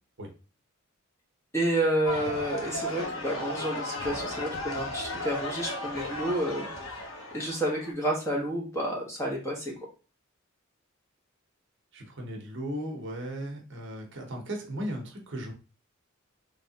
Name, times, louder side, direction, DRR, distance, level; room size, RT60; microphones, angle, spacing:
voice 1, 1.5-9.7, right 1 dB, 15° left, -2 dB, 1.1 m, -30 dB
sound 1, 2.1-7.9, left 1 dB, 80° left, 0.9 m, -35 dB
voice 2, 11.9-15.5, equal, 60° right, 2 dB, 0.9 m, -36 dB
3.5 x 3.3 x 2.8 m, 0.34 s
head